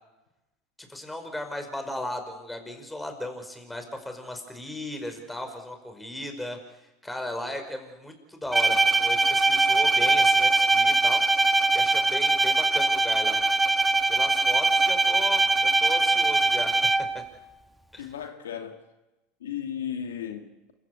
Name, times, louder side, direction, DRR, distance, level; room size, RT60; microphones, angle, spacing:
voice 1, 0.8-6.6 7.0-11.2 11.7-13.4 14.1-16.8 17.1-17.2 17.9-18.1, left 1 dB, 5° left, 5 dB, 5.5 m, -36 dB
Bowed string instrument, 8.5-17.3, right 3 dB, 10° right, 1.3 m, -22 dB
voice 2, 18.0-18.8 19.4-20.7, left 9 dB, 85° left, 5 dB, 2.4 m, -35 dB
28.5 x 15.5 x 8.5 m, 0.99 s
hypercardioid pair, 95°, 0 cm